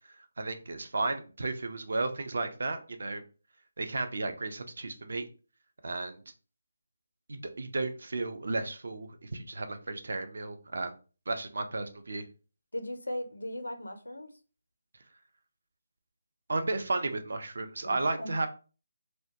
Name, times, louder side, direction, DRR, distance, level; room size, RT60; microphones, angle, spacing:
voice 1, 0.4-3.2 3.8-5.3 5.8-6.2 7.3-10.9 11.3-12.3 16.5-18.5, right 2 dB, 60° right, 7 dB, 0.4 m, -33 dB
voice 2, 12.7-14.3 17.8-18.3, left 1 dB, 80° left, 7 dB, 0.5 m, -38 dB
2.1 x 2.1 x 2.8 m, 0.35 s
figure-of-eight pair, 150°, 0 cm